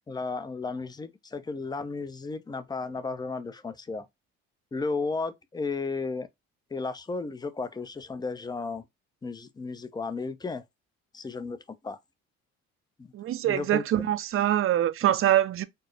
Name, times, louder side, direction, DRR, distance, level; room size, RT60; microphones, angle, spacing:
voice 1, 0.0-4.1 4.7-6.3 6.7-8.8 9.2-10.6 11.1-11.6 11.8-12.0 13.4-14.1, left 4 dB, 15° left, 0.5 m, -34 dB
voice 2, 13.1-15.6, right 12 dB, 45° right, 0.5 m, -24 dB
4.4 x 2.0 x 3.1 m
supercardioid pair, 80°, 30 cm